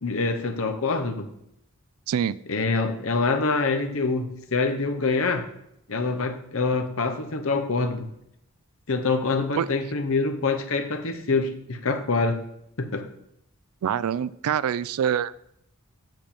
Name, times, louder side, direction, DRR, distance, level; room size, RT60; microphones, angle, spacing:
voice 1, 0.0-1.3 2.5-5.5 5.9-8.1 8.9-12.4 12.8-13.1, left 3 dB, 65° left, 6 dB, 0.8 m, -25 dB
voice 2, 13.8-15.3, right 8 dB, 85° right, 19 dB, 0.3 m, -25 dB
7.8 x 7.0 x 4.4 m, 0.77 s
head